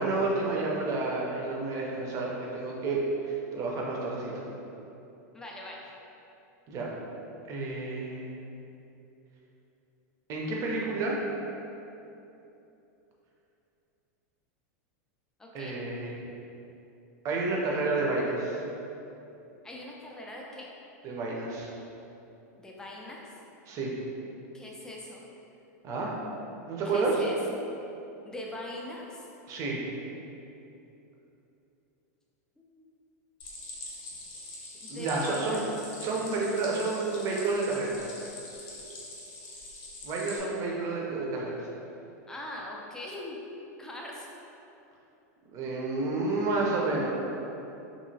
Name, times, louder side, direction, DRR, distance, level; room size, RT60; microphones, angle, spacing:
voice 1, 0.0-4.5 6.7-6.9 7.5-8.4 10.3-11.2 15.5-16.2 17.2-18.6 21.0-21.7 23.7-23.9 25.8-26.1 26.7-27.2 29.5-29.8 34.9-35.6 36.0-38.0 40.0-41.6 45.5-47.1, right 3 dB, 35° right, -3 dB, 0.6 m, -30 dB
voice 2, 5.3-5.9 15.4-15.8 19.6-20.7 22.5-23.2 24.5-25.2 26.8-27.7 28.2-29.3 32.6-32.9 34.8-35.6 42.3-43.4 43.8-44.3, left 1 dB, 5° left, -2 dB, 0.4 m, -41 dB
Stream, 33.4-40.4, left 2 dB, 50° left, 0.7 m, -44 dB
2.9 x 2.7 x 2.7 m, 2.9 s
supercardioid pair, 135°, 9 cm